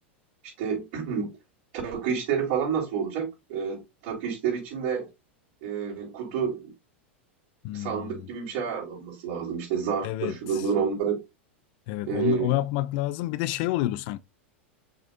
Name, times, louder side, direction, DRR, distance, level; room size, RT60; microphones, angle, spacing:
voice 1, 0.4-1.3 1.8-5.1 5.6-6.7 7.7-11.2 12.0-12.5, right 6 dB, 55° right, 3.9 m, -29 dB
voice 2, 7.6-8.3 10.0-10.4 11.9-14.2, left 15 dB, 55° left, 0.5 m, -28 dB
6.9 x 5.8 x 2.6 m
hypercardioid pair, 95°, 6 cm